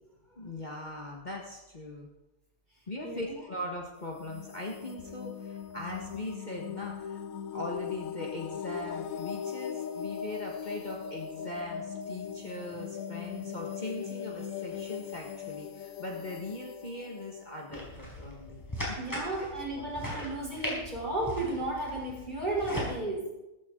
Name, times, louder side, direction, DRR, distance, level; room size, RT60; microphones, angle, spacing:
voice 1, 0.2-2.1 2.9-7.2 7.5-19.0 19.3-19.5, left 2 dB, 35° left, -1 dB, 1.6 m, -40 dB
voice 2, 3.0-3.4 19.0-23.3, right 2 dB, 35° right, -4 dB, 5.8 m, -34 dB
sound 1, 4.0-18.7, left 7 dB, 90° left, 1.1 m, -40 dB
sound 2, 17.7-22.9, equal, 15° left, 4.6 m, -39 dB
16.5 x 14.5 x 3.8 m, 0.99 s
omnidirectional pair, 1.4 m